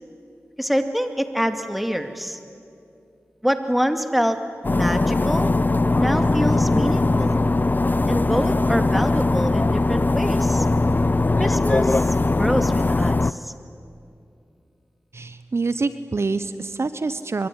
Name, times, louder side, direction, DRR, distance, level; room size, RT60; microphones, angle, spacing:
voice 1, 0.6-2.4 3.4-4.4 4.7-5.5 6.0-7.4 8.1-10.7 11.4-13.5, equal, ahead, 7 dB, 2.3 m, -25 dB
sound 1, 4.6-13.3, left 2 dB, 35° left, 0.6 m, -20 dB
voice 2, 15.1-17.5, right 3 dB, 55° right, 12 dB, 1.0 m, -26 dB
24.5 x 23.5 x 9.9 m, 2.6 s
cardioid pair, 45°, 5 cm